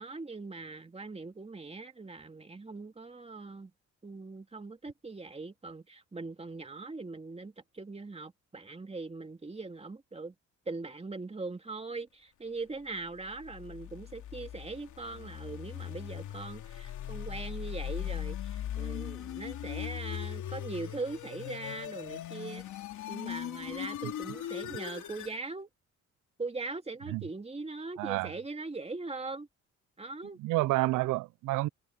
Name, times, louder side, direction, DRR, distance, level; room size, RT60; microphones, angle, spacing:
voice 1, 0.0-3.7 4.0-10.3 10.7-22.6 23.1-25.7 26.4-29.5 30.0-30.4, right 3 dB, 20° right, 2.4 m, -41 dB
sound 1, 13.2-25.4, left 11 dB, 75° left, 3.0 m, -39 dB
voice 2, 28.0-28.3 30.4-31.7, right 19 dB, 85° right, 0.5 m, -29 dB
cardioid pair, 90°, 30 cm